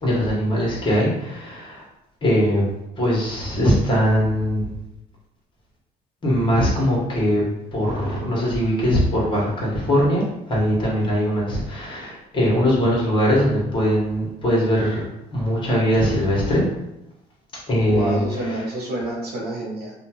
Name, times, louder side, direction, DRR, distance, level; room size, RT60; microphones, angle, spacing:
voice 1, 0.0-1.8 2.2-4.7 6.2-7.4 7.7-15.1 15.3-16.6 17.7-18.6, equal, 30° left, -4 dB, 1.2 m, -21 dB
voice 2, 17.8-19.9, right 1 dB, 70° right, -2 dB, 0.9 m, -28 dB
2.7 x 2.4 x 2.9 m, 0.86 s
cardioid pair, 110°, 17 cm